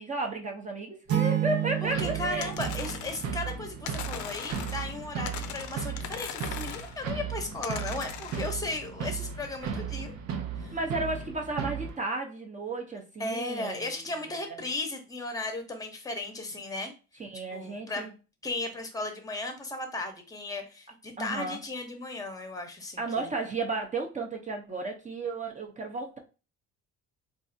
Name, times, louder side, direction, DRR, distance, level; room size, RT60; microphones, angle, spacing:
voice 1, 0.0-2.5 10.7-14.0 14.3-14.6 17.2-18.1 21.2-21.6 23.0-26.2, right 3 dB, 25° right, 1 dB, 0.6 m, -33 dB
sound 1, 1.1-3.9, right 10 dB, 50° right, 1.0 m, -31 dB
voice 2, 1.8-10.1 10.6-10.7 13.2-16.9 17.5-18.1 18.4-23.3, left 2 dB, 10° left, 5 dB, 0.8 m, -36 dB
sound 2, 1.9-12.0, right 7 dB, 70° right, 0.7 m, -36 dB
sound 3, 2.4-3.4 3.9-5.0 5.3-7.0 7.6-8.6, left 10 dB, 85° left, 0.5 m, -40 dB
4.0 x 2.4 x 2.6 m, 0.32 s
cardioid pair, 115°, 30 cm